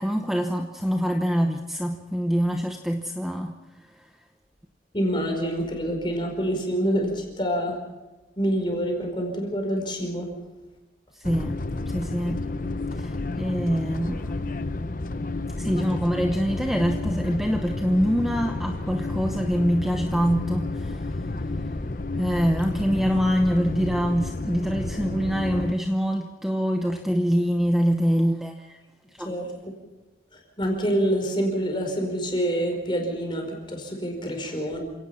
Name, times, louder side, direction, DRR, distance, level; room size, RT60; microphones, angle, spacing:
voice 1, 0.0-4.1 11.1-11.5 11.9-12.4 12.9-14.3 15.6-21.3 21.6-21.8 22.1-28.8 29.1-29.4 34.4-34.5, equal, ahead, 4 dB, 0.9 m, -25 dB
voice 2, 4.9-7.8 8.4-10.3 29.2-29.7 30.6-34.8, equal, 25° left, 3 dB, 4.8 m, -26 dB
sound 1, 11.2-25.7, left 2 dB, 45° left, 0.8 m, -31 dB
28.0 x 17.5 x 5.9 m, 1.1 s
head